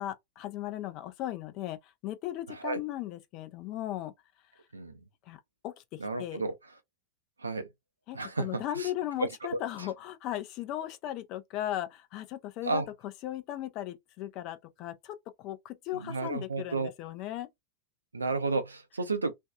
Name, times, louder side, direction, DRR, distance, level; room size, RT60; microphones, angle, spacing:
voice 1, 0.0-4.1 5.3-5.4 5.6-6.4 8.1-12.8 13.2-17.5, left 13 dB, 40° left, 0.5 m, -37 dB
voice 2, 2.5-2.8 4.7-5.0 6.0-6.5 7.4-7.7 8.1-8.9 9.2-9.9 12.6-12.9 15.9-16.9 18.1-19.3, right 3 dB, 75° right, 0.5 m, -32 dB
2.6 x 2.3 x 2.2 m
figure-of-eight pair, 90°, 0 cm